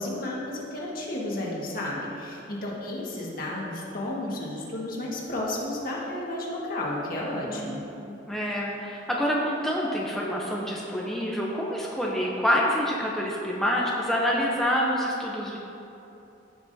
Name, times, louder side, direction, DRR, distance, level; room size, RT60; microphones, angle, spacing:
voice 1, 0.0-7.8, left 1 dB, 50° left, -4 dB, 1.6 m, -32 dB
voice 2, 7.5-15.6, equal, ahead, -4 dB, 0.7 m, -27 dB
15.0 x 5.9 x 2.7 m, 2.9 s
head